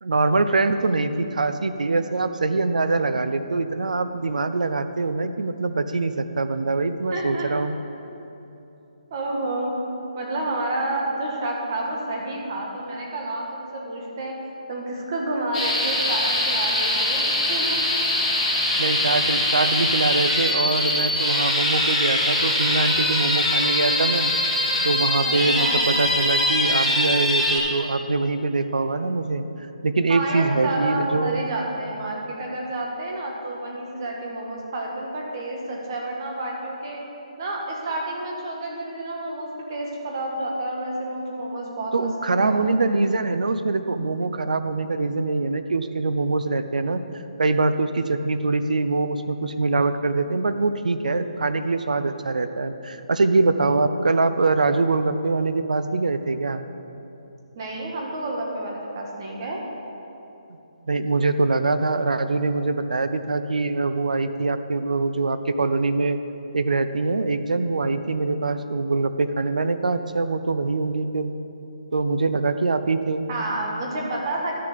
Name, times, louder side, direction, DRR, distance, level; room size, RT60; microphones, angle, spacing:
voice 1, 0.0-7.7 18.8-24.3 24.8-31.4 41.9-47.0 47.4-56.6 60.9-66.2 66.5-71.3 71.9-73.3, right 3 dB, 85° right, 10 dB, 0.6 m, -23 dB
voice 2, 7.1-7.5 9.1-9.8 10.1-14.3 14.7-17.9 25.2-25.8 30.1-37.0 37.4-41.9 42.2-42.6 57.5-59.6 73.3-74.5, right 1 dB, 30° right, -1 dB, 1.6 m, -30 dB
sound 1, 15.5-27.6, left 1 dB, 10° left, 2.5 m, -22 dB
12.5 x 6.8 x 5.1 m, 3.0 s
hypercardioid pair, 170°, 4 cm